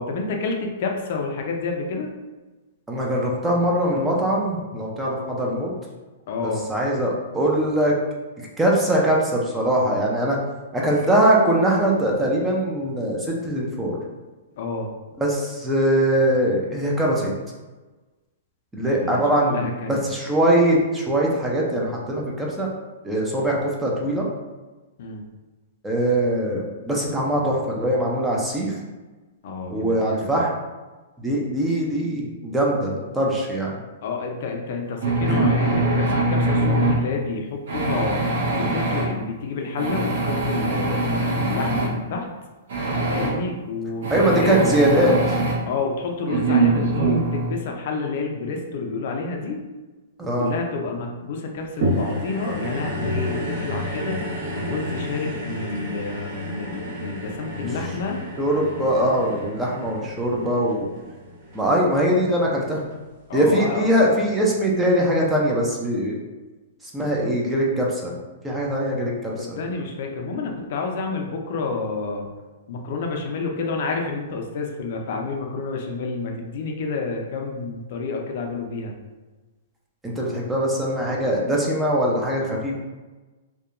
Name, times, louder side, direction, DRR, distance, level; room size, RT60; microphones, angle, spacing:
voice 1, 0.0-2.1 6.3-6.7 14.6-14.9 18.8-20.0 23.4-23.5 25.0-25.2 29.4-30.4 34.0-38.2 38.5-42.3 43.1-44.6 45.7-49.7 50.2-58.2 63.3-63.9 69.4-72.3 72.7-78.9, left 4 dB, 60° left, 2 dB, 0.4 m, -29 dB
voice 2, 2.9-5.7 6.7-8.0 8.4-10.4 10.7-14.0 15.2-17.3 18.7-22.7 23.0-24.3 25.8-28.7 29.7-30.5 31.2-33.8 35.3-35.5 43.2-43.4 44.1-45.1 50.2-50.5 57.5-57.6 58.4-60.8 61.5-62.8 63.3-66.1 66.9-68.1 68.4-69.3 80.0-82.7, right 1 dB, 10° right, -3 dB, 0.5 m, -22 dB
sound 1, 35.0-37.0 37.7-39.0 39.8-41.9 42.7-43.3 44.0-45.5 46.3-47.5, right 2 dB, 70° right, 0.8 m, -22 dB
sound 2, 51.8-62.3 62.9-63.0, equal, 50° right, 1.3 m, -31 dB
2.7 x 2.2 x 2.5 m, 1.2 s
hypercardioid pair, 135°, 0 cm